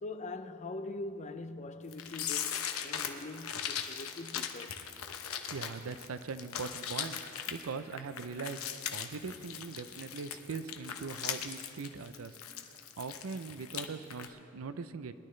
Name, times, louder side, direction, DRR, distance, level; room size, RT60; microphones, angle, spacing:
voice 1, 0.0-4.8, left 2 dB, 35° left, 0.5 m, -43 dB
sound 1, 1.9-13.8 14.1-14.3, left 8 dB, 85° left, 0.8 m, -39 dB
voice 2, 5.2-8.6 8.9-12.4 13.0-15.1, right 5 dB, 75° right, 0.5 m, -41 dB
20.5 x 11.0 x 3.2 m
head